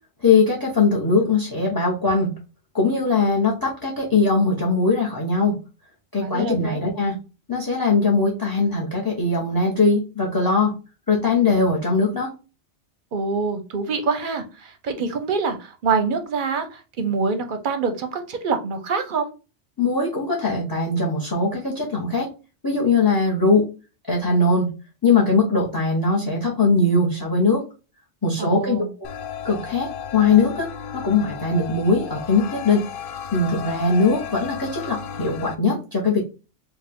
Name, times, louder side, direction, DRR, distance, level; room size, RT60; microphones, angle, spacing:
voice 1, 0.2-2.3 2.7-5.6 6.1-7.1 7.5-10.7 11.1-12.3 19.8-22.3 22.6-23.7 24.1-24.7 25.0-27.6 28.2-28.8 29.4-30.7 30.9-32.8 33.3-36.2, left 3 dB, 20° left, 0 dB, 0.8 m, -20 dB
voice 2, 6.2-6.8 13.1-19.3 28.4-28.9, right 4 dB, 50° right, 7 dB, 0.7 m, -25 dB
sound 1, 29.0-35.6, left 7 dB, 60° left, 0.6 m, -34 dB
4.8 x 2.4 x 3.5 m, 0.32 s
omnidirectional pair, 1.2 m